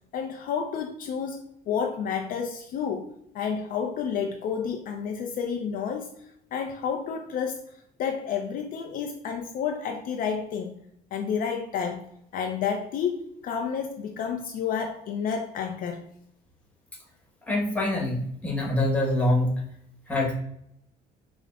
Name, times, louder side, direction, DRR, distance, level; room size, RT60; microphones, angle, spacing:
voice 1, 0.1-3.1 3.3-6.1 6.5-7.6 8.0-10.7 11.1-12.1 12.3-16.0, left 7 dB, 55° left, 4 dB, 0.4 m, -30 dB
voice 2, 17.5-19.6 20.1-20.3, left 1 dB, 10° left, -3 dB, 1.1 m, -25 dB
4.9 x 2.0 x 2.3 m, 0.74 s
cardioid pair, 110°, 17 cm